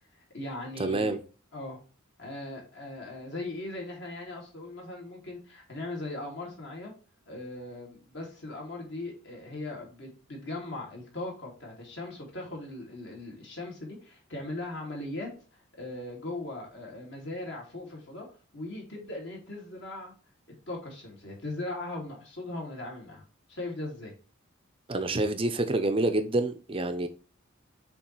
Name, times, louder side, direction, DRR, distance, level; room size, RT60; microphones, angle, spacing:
voice 1, 0.1-1.1 1.5-1.8 2.2-6.9 7.3-18.3 18.5-20.1 20.7-23.2 23.5-24.1, left 2 dB, 55° left, 2.6 m, -39 dB
voice 2, 0.8-1.2 24.9-27.1, right 2 dB, 25° right, 0.6 m, -27 dB
7.2 x 3.2 x 4.5 m
head